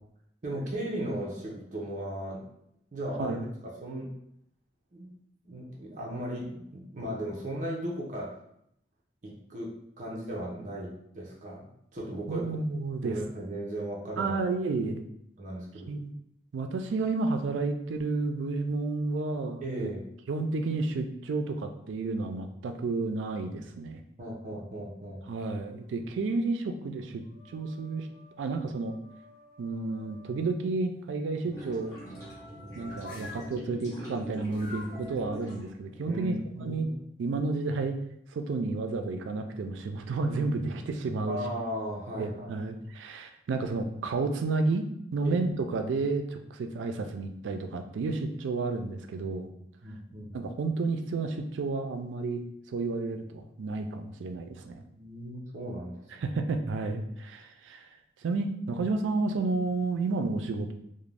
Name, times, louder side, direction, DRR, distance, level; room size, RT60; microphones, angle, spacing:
voice 1, 0.4-2.4 2.9-3.4 3.8-4.1 4.9-5.1 5.4-8.3 9.2-11.7 11.9-12.6 13.0-14.4 15.4-15.9 19.6-20.1 24.2-25.3 36.1-36.9 41.3-42.5 45.2-45.4 49.8-50.4 54.8-56.3, right 1 dB, 40° right, -4 dB, 0.5 m, -36 dB
voice 2, 12.3-13.2 14.2-15.0 15.9-16.1 16.5-19.9 20.3-24.0 25.3-28.1 28.4-29.0 29.6-32.0 32.7-36.3 36.6-36.9 37.2-38.0 38.3-41.4 42.2-44.8 45.1-49.5 50.3-54.8 56.2-57.9 58.2-60.7, right 3 dB, 90° right, 6 dB, 0.3 m, -31 dB
sound 1, 25.1-26.0 26.6-30.5 31.3-33.5 34.5-35.1, left 2 dB, 45° left, 0.6 m, -50 dB
sound 2, 31.4-37.0, right 1 dB, 15° left, 0.9 m, -46 dB
2.5 x 2.1 x 3.2 m, 0.74 s
head